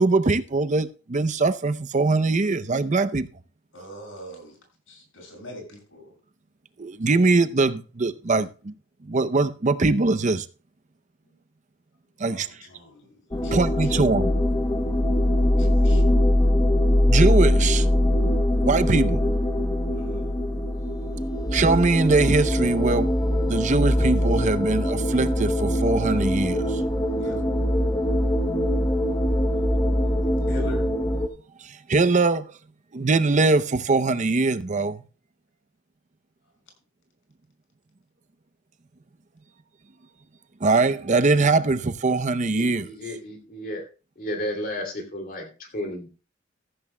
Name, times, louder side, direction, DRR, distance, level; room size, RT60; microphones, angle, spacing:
voice 1, 0.0-3.3 6.8-8.7 9.0-10.5 12.2-12.5 13.5-14.3 17.1-17.9 18.6-19.2 21.5-23.1 23.5-26.8 31.6-32.5 32.9-35.0 40.6-42.9, right 3 dB, 40° right, 0.6 m, -22 dB
voice 2, 3.7-4.6 4.9-6.1 12.2-13.9 15.6-16.0 19.9-20.3 27.2-27.5 30.5-30.8, left 1 dB, 75° left, 6.3 m, -42 dB
sound 1, 13.3-31.3, left 1 dB, 20° left, 1.0 m, -22 dB
voice 3, 42.5-43.9 44.2-46.1, left 1 dB, 45° left, 2.7 m, -33 dB
14.5 x 14.5 x 2.2 m
head